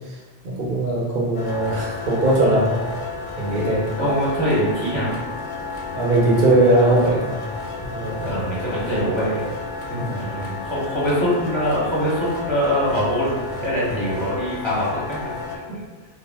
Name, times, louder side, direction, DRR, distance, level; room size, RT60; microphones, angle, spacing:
voice 1, 0.4-2.8 3.4-3.9 5.9-7.4 7.8-8.5 10.0-10.5 13.9-14.0, right 1 dB, 60° right, -4 dB, 0.8 m, -20 dB
sound 1, 1.3-15.6, left 3 dB, 65° left, 0.7 m, -32 dB
voice 2, 4.0-5.1 8.2-9.4 9.9-15.3 15.7-15.8, equal, 30° left, -8 dB, 0.8 m, -23 dB
2.4 x 2.0 x 3.3 m, 1.4 s
omnidirectional pair, 1.1 m